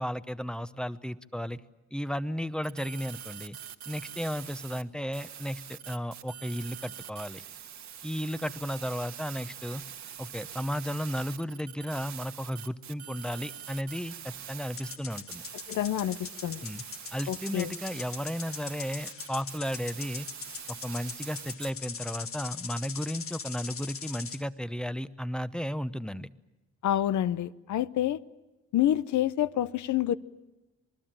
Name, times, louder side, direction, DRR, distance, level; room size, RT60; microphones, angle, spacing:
voice 1, 0.0-1.6 1.9-3.6 3.9-7.4 8.0-9.8 10.2-15.4 16.6-16.8 17.1-20.3 20.7-26.3, equal, 5° left, 0.9 m, -34 dB
sound 1, 2.6-4.8 5.1-21.7, right 9 dB, 65° right, 1.6 m, -44 dB
sound 2, 14.7-24.4, left 6 dB, 45° left, 1.4 m, -42 dB
voice 2, 15.7-16.6 17.3-17.7 26.8-28.2 28.7-30.2, left 12 dB, 70° left, 0.9 m, -28 dB
27.0 x 20.0 x 9.0 m
cardioid pair, 90°, 30 cm